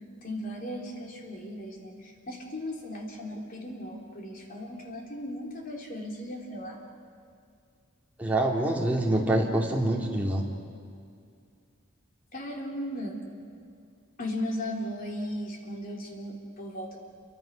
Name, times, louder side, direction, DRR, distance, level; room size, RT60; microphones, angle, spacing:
voice 1, 0.2-6.8 12.3-13.2 14.2-17.0, left 1 dB, 45° left, 0 dB, 3.6 m, -36 dB
voice 2, 8.2-10.5, right 1 dB, 10° right, -2 dB, 2.8 m, -25 dB
28.5 x 24.0 x 6.6 m, 2.3 s
head